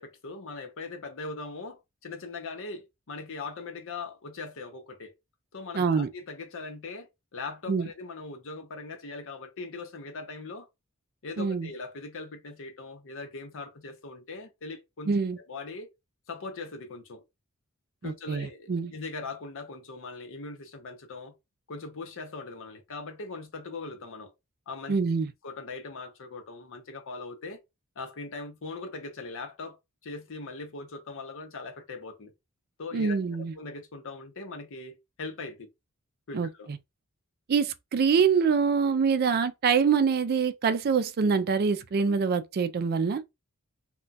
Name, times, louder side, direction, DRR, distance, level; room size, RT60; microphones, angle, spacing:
voice 1, 0.0-5.1 5.5-10.7 11.2-15.9 16.3-17.2 18.0-21.3 21.7-24.3 24.7-25.0 25.4-27.6 28.0-29.8 30.0-32.3 32.8-35.7 36.3-36.7, left 3 dB, 60° left, 0.7 m, -40 dB
voice 2, 5.7-6.1 7.7-7.9 11.4-11.7 15.1-15.4 18.0-18.9 24.9-25.3 32.9-33.5 36.3-36.8 37.5-43.2, right 5 dB, 45° right, 0.4 m, -25 dB
2.3 x 2.2 x 3.9 m
head